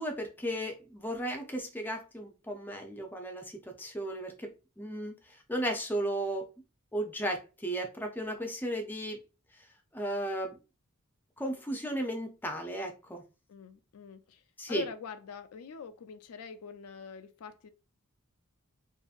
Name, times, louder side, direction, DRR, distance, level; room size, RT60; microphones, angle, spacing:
voice 1, 0.0-4.5 4.8-6.5 6.9-9.2 9.9-10.6 11.4-13.2 14.6-14.8, right 1 dB, 10° left, 0.5 m, -35 dB
voice 2, 13.5-14.4 14.7-17.7, left 6 dB, 90° left, 0.4 m, -44 dB
2.8 x 2.5 x 2.4 m
head